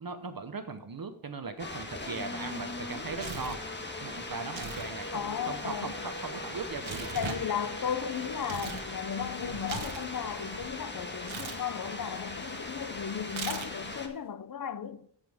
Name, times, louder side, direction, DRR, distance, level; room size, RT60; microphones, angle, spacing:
voice 1, 0.0-3.6 4.0-7.3, right 4 dB, 50° right, 0.9 m, -39 dB
sound 1, 1.6-14.1, left 2 dB, 25° left, 1.4 m, -39 dB
Tearing, 2.8-3.7 4.4-4.9 5.2-8.9 9.2-10.7 11.2-11.6 13.3-13.9, right 5 dB, 90° right, 1.2 m, -41 dB
voice 2, 5.1-5.9 7.1-15.1, left 8 dB, 45° left, 0.7 m, -35 dB
14.0 x 5.4 x 3.5 m
wide cardioid pair, 90°, 46 cm